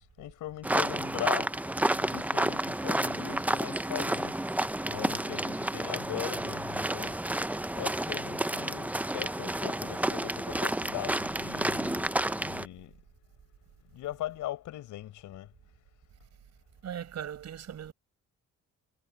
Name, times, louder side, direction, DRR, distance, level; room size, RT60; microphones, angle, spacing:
voice 1, 0.2-1.5 1.9-4.4 4.9-7.2 7.7-12.9 13.9-15.5, left 14 dB, 85° left, 4.6 m, -40 dB
sound 1, 0.6-12.7, right 1 dB, 5° right, 0.6 m, -30 dB
voice 2, 16.8-17.9, right 9 dB, 60° right, 5.8 m, -39 dB
cardioid pair, 90°, 30 cm